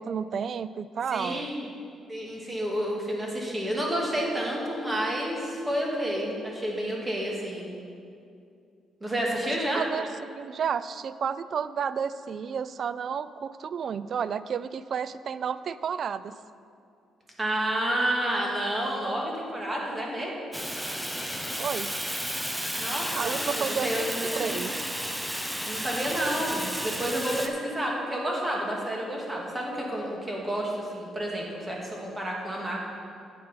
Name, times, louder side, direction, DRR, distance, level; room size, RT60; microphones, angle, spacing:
voice 1, 0.0-1.5 9.3-16.4 21.6-21.9 23.2-24.7 32.7-32.8, right 7 dB, 55° right, 15 dB, 0.3 m, -32 dB
voice 2, 1.1-1.6 2.1-7.7 9.0-9.8 17.4-20.3 22.7-24.6 25.7-32.8, right 1 dB, 20° right, -2 dB, 2.3 m, -30 dB
Fire, 20.5-27.5, equal, 5° right, 0.9 m, -32 dB
9.2 x 7.7 x 5.7 m, 2.4 s
cardioid pair, 90°, 0 cm